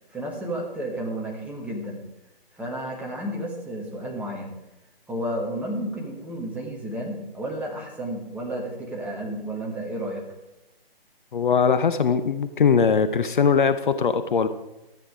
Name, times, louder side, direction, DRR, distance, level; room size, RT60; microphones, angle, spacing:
voice 1, 0.1-2.0 2.5-4.5 5.1-10.2, right 1 dB, 5° right, -2 dB, 1.5 m, -32 dB
voice 2, 11.3-14.5, left 6 dB, 55° left, 11 dB, 0.8 m, -21 dB
13.0 x 8.8 x 4.9 m, 0.99 s
hypercardioid pair, 155°, 30 cm